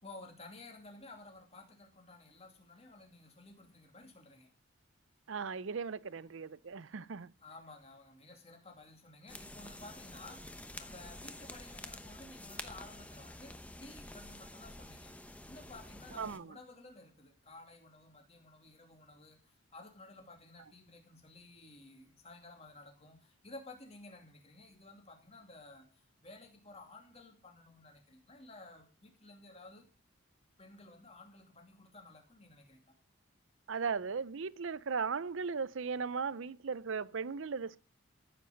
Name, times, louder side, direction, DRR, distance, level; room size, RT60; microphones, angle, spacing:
voice 1, 0.0-4.5 7.4-15.2 15.5-29.9 30.6-32.9, left 2 dB, 30° left, 2.6 m, -54 dB
voice 2, 5.3-7.3 16.2-16.6 33.7-37.8, right 5 dB, 65° right, 0.5 m, -37 dB
sound 1, 9.3-16.4, left 1 dB, 5° left, 0.9 m, -49 dB
14.5 x 8.1 x 5.3 m
head